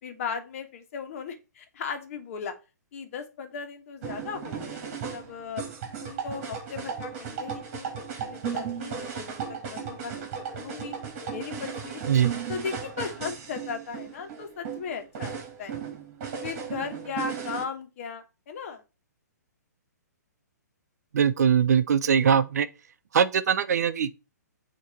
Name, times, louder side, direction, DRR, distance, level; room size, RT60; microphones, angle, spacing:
voice 1, 0.0-2.5 2.9-5.6 6.0-7.9 8.2-10.1 10.5-10.9 11.3-12.0 12.5-15.7 16.4-18.8, left 6 dB, 50° left, 1.4 m, -37 dB
sound 1, 4.0-17.6, right 7 dB, 40° right, 1.8 m, -36 dB
voice 2, 21.1-22.7 23.1-24.2, right 7 dB, 65° right, 0.6 m, -22 dB
8.2 x 2.9 x 4.4 m
hypercardioid pair, 125°, 10 cm